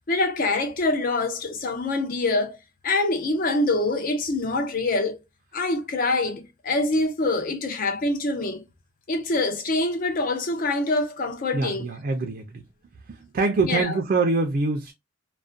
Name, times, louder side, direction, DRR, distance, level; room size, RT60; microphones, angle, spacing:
voice 1, 0.1-2.6 2.8-5.2 5.5-8.6 9.1-11.9 13.6-14.0, left 2 dB, 45° left, 0.5 m, -25 dB
voice 2, 11.5-12.6 13.1-14.9, right 3 dB, 45° right, 0.4 m, -24 dB
2.4 x 2.1 x 2.4 m
head